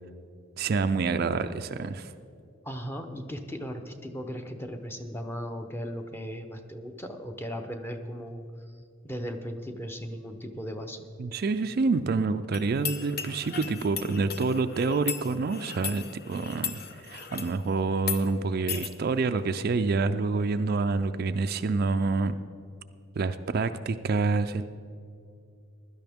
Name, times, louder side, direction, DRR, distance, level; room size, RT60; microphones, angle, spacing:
voice 1, 0.6-2.1 11.2-22.4 23.2-24.6, right 4 dB, 45° right, 10 dB, 0.4 m, -27 dB
voice 2, 2.6-8.4 9.0-11.1, equal, 10° left, 5 dB, 0.7 m, -37 dB
sound 1, 12.5-17.6 18.0-18.2 18.7-18.9, left 7 dB, 45° left, 0.8 m, -36 dB
16.0 x 12.0 x 3.5 m, 2.5 s
head